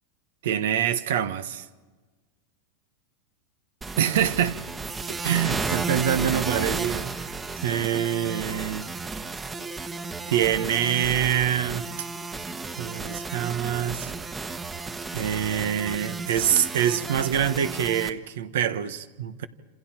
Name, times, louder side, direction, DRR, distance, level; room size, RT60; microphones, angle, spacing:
voice 1, 0.4-1.6 4.0-4.6 5.1-7.1 7.6-8.9 10.3-11.9 12.8-14.1 15.1-19.5, right 10 dB, 80° right, 1.3 m, -25 dB
sound 1, 3.8-18.1, right 3 dB, 20° right, 1.3 m, -33 dB
28.5 x 27.0 x 4.5 m
hypercardioid pair, 115°, 0 cm